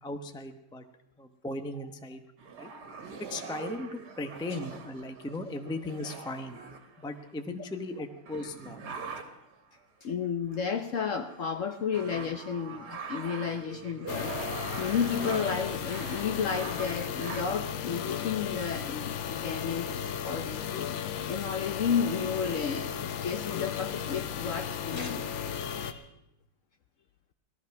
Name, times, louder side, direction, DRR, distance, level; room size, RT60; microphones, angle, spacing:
voice 1, 0.0-0.8 1.2-2.2 2.6-2.7 3.2-6.6 7.0-8.8, left 2 dB, 5° left, 7 dB, 0.3 m, -37 dB
sound 1, 2.4-7.4 7.9-8.0 8.3-9.5 10.2-10.6 11.0-17.7 18.6-18.7 19.0-19.7, right 5 dB, 60° right, 2.0 m, -43 dB
voice 2, 10.0-14.3 14.8-20.6 21.1-25.2 25.5-26.1, left 6 dB, 60° left, 8 dB, 0.8 m, -32 dB
sound 2, 14.1-25.9, left 8 dB, 85° left, 1.6 m, -35 dB
18.5 x 13.5 x 5.9 m, 0.85 s
omnidirectional pair, 2.0 m